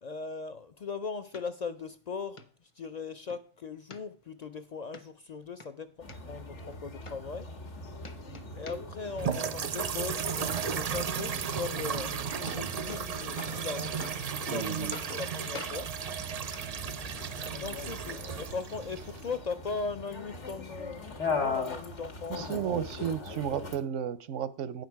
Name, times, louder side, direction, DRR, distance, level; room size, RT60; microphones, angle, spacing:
voice 1, 0.0-7.5 8.5-15.9 17.6-23.2 23.5-23.6, left 4 dB, 60° left, 0.4 m, -39 dB
sound 1, 1.3-1.4 1.9-2.0 2.4-2.5 2.9-3.4 3.9-4.5 4.9-5.0 5.4-6.2 6.7-6.8 7.0-7.7 8.0-9.1 9.3-9.9 11.9-12.0 12.2-13.1 13.4-13.7 14.0-14.6 14.9-15.3 15.5-15.8 16.5-16.6 17.5-17.6, left 3 dB, 30° left, 0.7 m, -45 dB
sound 2, 6.0-23.8, left 4 dB, 75° left, 1.6 m, -41 dB
sound 3, 9.2-19.3, right 7 dB, 55° right, 0.4 m, -34 dB
voice 2, 14.5-15.0 22.3-24.8, right 9 dB, 85° right, 1.0 m, -33 dB
9.4 x 6.6 x 4.6 m
omnidirectional pair, 1.2 m